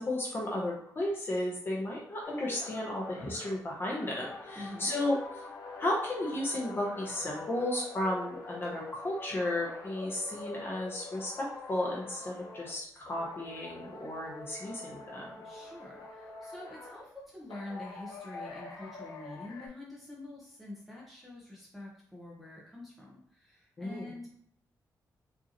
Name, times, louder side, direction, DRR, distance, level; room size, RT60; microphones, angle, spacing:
voice 1, 0.0-5.2 5.8-15.3 23.8-24.1, left 1 dB, 35° left, -3 dB, 0.8 m, -34 dB
sound 1, 2.2-12.8 13.1-17.1 17.5-19.7, left 3 dB, 70° left, 0.8 m, -45 dB
voice 2, 4.5-4.9 15.4-24.3, left 2 dB, ahead, -5 dB, 0.8 m, -46 dB
4.9 x 2.7 x 2.9 m, 0.63 s
wide cardioid pair, 155°, 7 cm